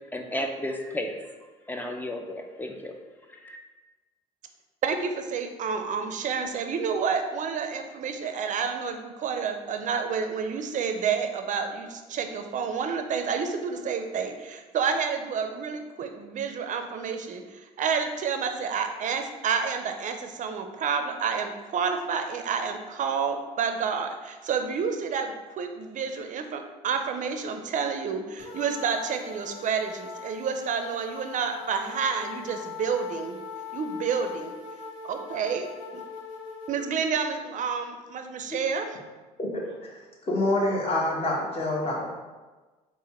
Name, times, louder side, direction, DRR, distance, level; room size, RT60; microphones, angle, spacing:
voice 1, 0.1-1.3 1.7-3.0 3.4-3.6, left 1 dB, 10° left, 4 dB, 0.5 m, -33 dB
voice 2, 4.8-33.4 33.7-34.6 35.0-35.7 36.7-39.0, right 6 dB, 45° right, 6 dB, 0.6 m, -29 dB
sound 1, 28.4-36.9, left 5 dB, 70° left, 1.4 m, -41 dB
voice 3, 39.4-39.9 40.2-42.1, left 1 dB, 35° left, -3 dB, 1.4 m, -27 dB
4.0 x 2.5 x 4.2 m, 1.2 s
supercardioid pair, 75°, 18 cm